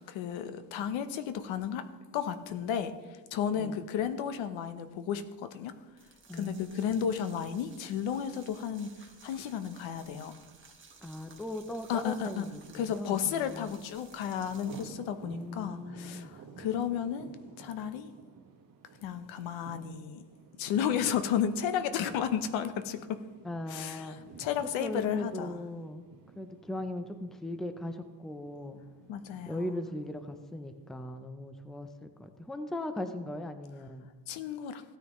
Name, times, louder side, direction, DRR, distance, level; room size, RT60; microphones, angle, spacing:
voice 1, 0.1-1.8 2.1-5.7 6.3-10.3 11.9-12.4 12.7-17.3 17.6-18.1 19.0-20.2 20.6-23.1 23.7-24.1 24.4-25.6 29.1-29.7 34.3-34.8, left 8 dB, 85° left, 10 dB, 1.0 m, -33 dB
voice 2, 3.6-3.9 6.3-7.1 11.0-13.8 15.2-16.3 23.4-24.2 24.8-26.0 26.4-28.8 29.5-34.1, left 1 dB, ahead, 8 dB, 0.5 m, -39 dB
sound 1, 5.9-14.9, right 5 dB, 25° right, 1.6 m, -56 dB
Thunder, 13.8-30.8, right 5 dB, 45° right, 1.5 m, -54 dB
16.0 x 9.4 x 3.1 m, 1.3 s
cardioid pair, 135°, 45 cm